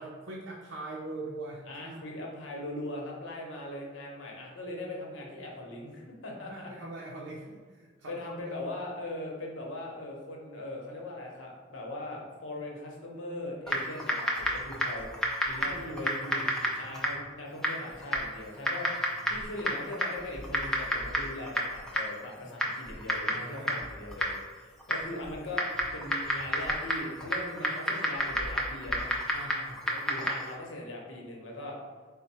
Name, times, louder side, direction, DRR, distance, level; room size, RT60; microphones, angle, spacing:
voice 1, 0.0-2.0 6.5-8.5 15.6-17.0 19.1-19.4 23.4-24.0 29.3-29.8, right 2 dB, 80° right, -3 dB, 0.5 m, -43 dB
voice 2, 1.7-6.7 8.1-16.5 16.8-25.6 25.9-29.1 29.9-31.8, left 1 dB, 80° left, -1 dB, 0.9 m, -40 dB
Typing, 13.7-30.5, equal, 5° left, 0.3 m, -32 dB
4.4 x 2.1 x 4.1 m, 1.5 s
head